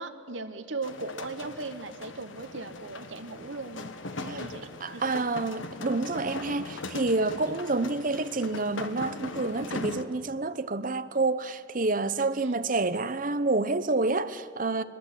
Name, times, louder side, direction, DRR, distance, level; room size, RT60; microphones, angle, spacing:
voice 1, 0.0-5.3 12.4-12.6, right 3 dB, 70° right, 1.4 m, -38 dB
sound 1, 0.8-10.0, left 2 dB, 75° left, 1.4 m, -40 dB
voice 2, 4.8-14.8, right 3 dB, 45° right, 0.9 m, -28 dB
24.0 x 21.5 x 8.5 m
head